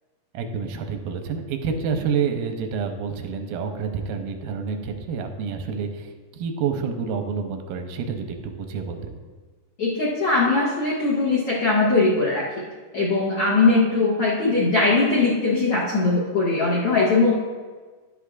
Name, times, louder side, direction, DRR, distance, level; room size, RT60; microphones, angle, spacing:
voice 1, 0.3-9.2, right 6 dB, 90° right, 5 dB, 2.4 m, -28 dB
voice 2, 9.8-12.4 12.9-17.3, left 3 dB, 65° left, -6 dB, 1.4 m, -20 dB
10.5 x 8.3 x 2.4 m, 1.4 s
omnidirectional pair, 4.1 m